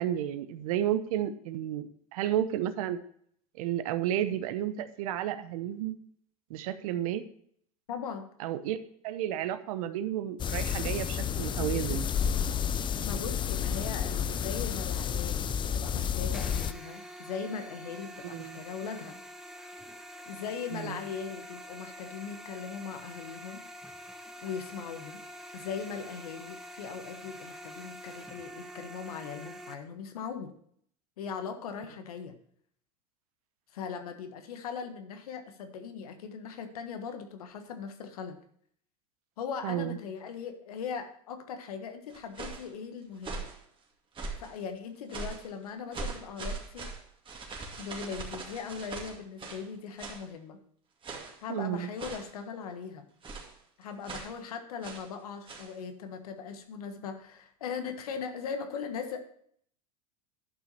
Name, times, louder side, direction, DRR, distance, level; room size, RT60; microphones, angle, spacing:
voice 1, 0.0-3.0 3.6-6.0 6.5-7.2 8.4-8.8 9.0-12.1 18.2-18.6 20.7-21.0 39.6-40.0 51.5-51.9, right 11 dB, 75° right, 12 dB, 0.9 m, -32 dB
voice 2, 7.9-8.3 13.0-19.2 20.2-23.6 24.4-25.2 25.5-30.5 31.2-32.4 33.7-38.4 39.4-43.4 44.4-46.9 47.8-50.6 51.4-53.1 53.8-59.3, left 6 dB, 85° left, 7 dB, 1.5 m, -39 dB
sound 1, 10.4-16.7, left 8 dB, 25° left, 0.5 m, -31 dB
sound 2, 16.3-29.7, equal, ahead, 1.2 m, -46 dB
sound 3, 42.1-42.7 43.2-43.6 44.1-44.6 45.1-45.5 45.9-49.7 50.0-50.3 51.0-51.4 52.0-52.4 53.2-53.6 54.0-54.4 54.8-55.1 55.5-55.7, right 3 dB, 25° right, 2.2 m, -40 dB
11.0 x 5.9 x 4.2 m, 0.64 s
hypercardioid pair, 95°, 19 cm